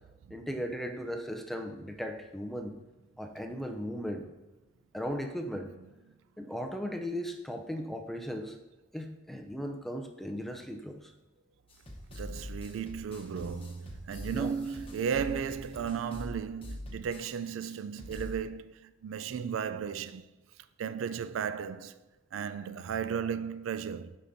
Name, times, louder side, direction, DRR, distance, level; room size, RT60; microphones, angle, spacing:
voice 1, 0.3-2.7 3.2-4.3 4.9-5.7 6.4-8.6 8.9-11.1 14.3-14.5, equal, ahead, 0.4 m, -37 dB
sound 1, 11.7-17.3 17.6-17.7 18.0-18.4, left 1 dB, 30° left, 1.0 m, -43 dB
voice 2, 12.1-20.3 20.8-22.0 22.3-24.2, right 7 dB, 80° right, 0.3 m, -35 dB
7.4 x 5.4 x 2.6 m
head